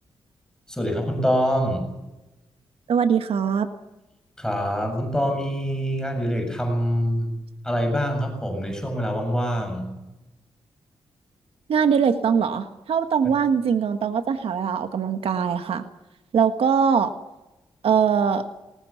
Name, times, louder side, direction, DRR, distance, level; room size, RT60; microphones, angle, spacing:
voice 1, 0.7-1.8 4.4-7.3 7.6-9.9, equal, 5° left, 3 dB, 7.3 m, -25 dB
voice 2, 2.9-3.7 11.7-15.8 16.3-17.1 17.8-18.4, right 7 dB, 75° right, 8 dB, 1.5 m, -21 dB
21.0 x 19.0 x 7.1 m, 1.0 s
cardioid pair, 80°, 10 cm